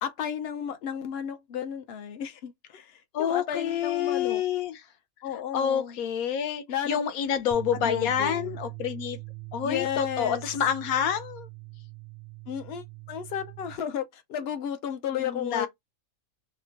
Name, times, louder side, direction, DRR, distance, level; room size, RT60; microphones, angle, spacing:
voice 1, 0.0-4.4 5.2-6.0 6.7-7.0 7.7-8.6 9.6-10.4 12.5-15.7, left 9 dB, 65° left, 0.6 m, -33 dB
voice 2, 3.1-4.8 5.5-9.2 9.5-11.5 15.1-15.7, left 8 dB, 80° left, 1.1 m, -28 dB
sound 1, 7.5-13.8, right 21 dB, 50° right, 0.6 m, -42 dB
2.9 x 2.1 x 3.8 m
omnidirectional pair, 1.5 m